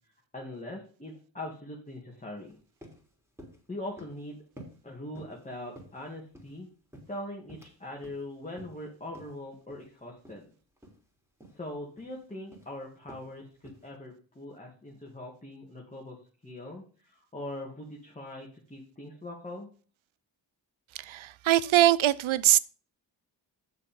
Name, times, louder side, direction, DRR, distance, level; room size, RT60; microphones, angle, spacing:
voice 1, 0.3-2.6 3.7-4.4 4.8-6.7 7.1-10.4 11.5-16.2 16.4-19.7, left 1 dB, 15° left, 2.2 m, -41 dB
sound 1, 2.5-2.6 2.8-3.0 3.4-3.6 4.0-4.2 4.6-4.8 5.1-5.4 5.7-6.6 6.9-7.8 8.0-8.2 8.6-8.8 9.1-9.3 9.7-9.9 10.2-10.4 10.8-11.0 11.4-11.6 12.0-12.2 12.5-12.7 13.1-13.3 13.6-13.9, right 1 dB, 5° right, 3.6 m, -50 dB
voice 2, 21.0-22.6, right 14 dB, 90° right, 0.6 m, -22 dB
8.4 x 6.6 x 5.2 m
cardioid pair, 65°, 46 cm